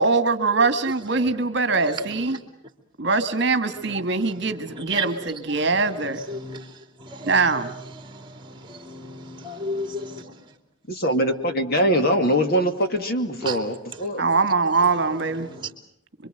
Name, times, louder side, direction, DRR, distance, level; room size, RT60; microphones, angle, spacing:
voice 1, 0.0-2.4 3.0-6.2 7.2-7.7 14.2-15.5, right 4 dB, 55° right, 1.6 m, -22 dB
voice 2, 4.7-5.7 6.3-10.5 13.4-13.6 13.9-14.4 14.7-14.9 15.3-15.7, right 1 dB, 20° right, 2.8 m, -35 dB
voice 3, 10.9-14.2, equal, 45° left, 2.3 m, -22 dB
26.5 x 24.0 x 7.8 m
head